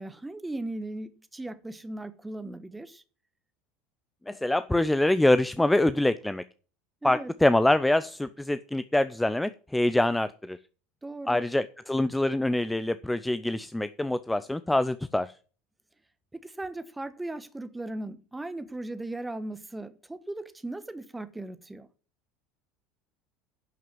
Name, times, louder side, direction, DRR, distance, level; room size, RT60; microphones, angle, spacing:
voice 1, 0.0-3.0 7.0-7.3 11.0-11.5 16.3-21.9, right 2 dB, 10° right, 1.3 m, -37 dB
voice 2, 4.3-6.4 7.0-10.6 11.3-15.3, left 1 dB, 5° left, 0.6 m, -25 dB
11.0 x 6.0 x 7.3 m
figure-of-eight pair, 70°, 0 cm